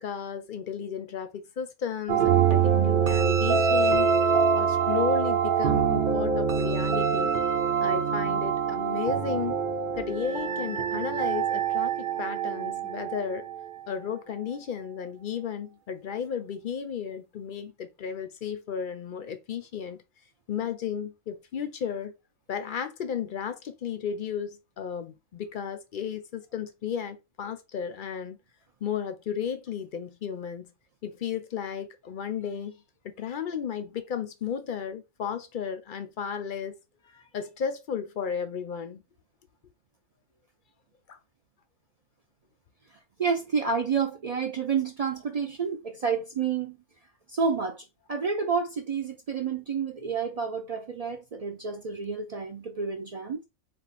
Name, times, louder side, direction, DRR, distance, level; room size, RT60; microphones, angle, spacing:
voice 1, 0.0-4.1 4.5-7.3 7.8-9.6 10.0-13.5 13.9-20.0 20.5-22.1 22.5-28.4 28.8-30.7 31.0-32.8 33.2-36.8 37.1-39.0 41.1-41.2, left 7 dB, 55° left, 0.5 m, -34 dB
sound 1, 2.1-13.7, right 6 dB, 50° right, 0.7 m, -25 dB
voice 2, 43.2-46.8 47.3-53.4, right 5 dB, 75° right, 0.3 m, -29 dB
4.1 x 2.4 x 4.0 m
omnidirectional pair, 1.3 m